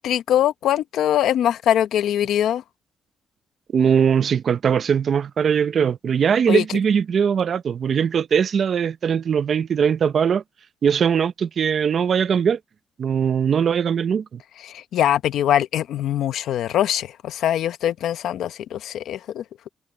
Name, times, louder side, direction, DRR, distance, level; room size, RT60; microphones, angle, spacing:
voice 1, 0.0-2.6 6.5-6.6 14.6-19.4, left 11 dB, 85° left, 1.0 m, -22 dB
voice 2, 3.7-10.4 10.8-12.6 13.0-14.4, right 7 dB, 55° right, 0.7 m, -20 dB
cardioid pair, 95°, 0 cm